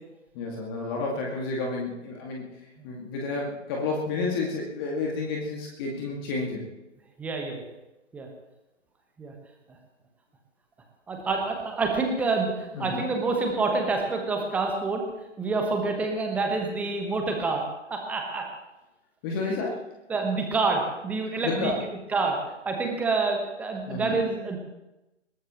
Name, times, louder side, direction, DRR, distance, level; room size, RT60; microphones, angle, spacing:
voice 1, 0.3-2.4 2.8-6.6 12.7-13.1 19.2-19.8 21.4-21.8 23.9-24.2, left 3 dB, 20° left, -1 dB, 2.2 m, -30 dB
voice 2, 7.2-7.6 8.1-8.3 9.2-9.3 11.1-15.0 15.4-17.6 17.9-18.5 19.4-19.6 20.1-21.7 22.1-22.4 22.6-24.6, right 3 dB, 5° right, 2 dB, 1.2 m, -27 dB
21.5 x 19.0 x 3.1 m, 0.98 s
figure-of-eight pair, 140°, 37 cm